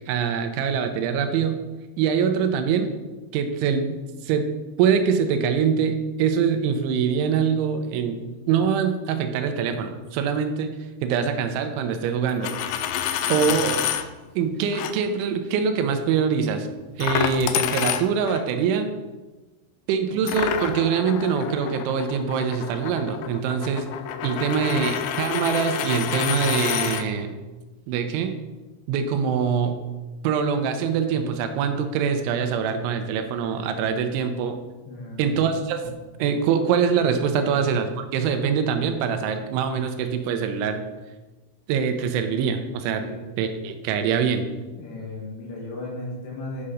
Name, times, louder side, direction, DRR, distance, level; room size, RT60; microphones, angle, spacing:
voice 1, 0.1-1.6 2.0-2.9 3.3-3.9 4.2-4.5 4.8-10.7 11.0-12.5 13.3-13.8 14.4-16.7 17.0-18.9 19.9-23.9 24.2-27.3 27.9-28.3 28.9-29.8 30.2-34.6 35.2-35.9 36.2-40.8 41.7-43.0 43.4-44.4, right 7 dB, 85° right, 7 dB, 3.1 m, -24 dB
Coin (dropping), 12.3-14.0 14.7-14.9 17.0-18.4 20.3-27.0, left 9 dB, 90° left, 3.1 m, -28 dB
voice 2, 34.9-35.6 37.4-37.6 43.0-43.2 44.7-46.6, left 2 dB, 65° left, -2 dB, 3.9 m, -36 dB
9.6 x 5.6 x 5.0 m, 1.2 s
omnidirectional pair, 5.4 m